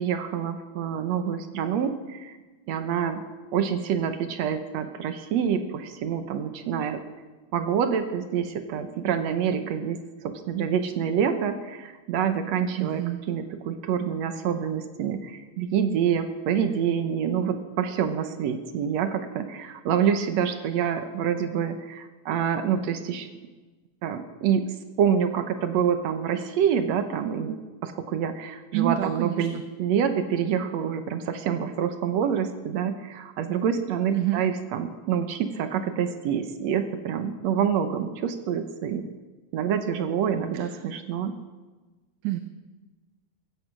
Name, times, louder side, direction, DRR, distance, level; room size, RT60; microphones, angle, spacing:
voice 1, 0.0-2.3 2.7-3.2 3.5-7.0 7.5-23.3 24.0-24.7 25.0-39.1 39.5-41.4, right 8 dB, 70° right, 9 dB, 2.1 m, -27 dB
voice 2, 12.8-13.2 28.7-29.5 34.1-34.4 40.5-40.6 42.2-42.4, right 14 dB, 90° right, 9 dB, 2.2 m, -27 dB
16.0 x 14.5 x 6.1 m, 1.3 s
omnidirectional pair, 3.4 m